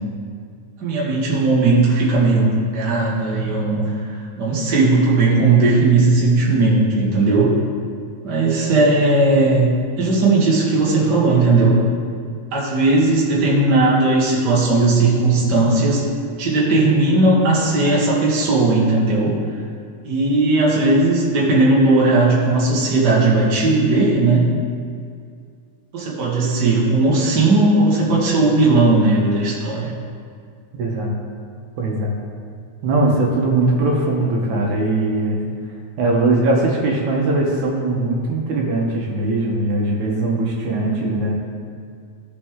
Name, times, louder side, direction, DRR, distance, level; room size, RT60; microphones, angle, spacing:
voice 1, 0.8-3.9 4.4-7.5 8.2-11.8 12.5-16.0 16.4-19.3 20.0-24.5 25.9-29.9, right 2 dB, 40° right, -5 dB, 2.1 m, -17 dB
voice 2, 30.7-31.1 31.8-32.1 32.8-35.4 36.0-41.3, right 2 dB, 80° right, -1 dB, 2.5 m, -20 dB
16.5 x 5.5 x 3.7 m, 2.2 s
omnidirectional pair, 3.4 m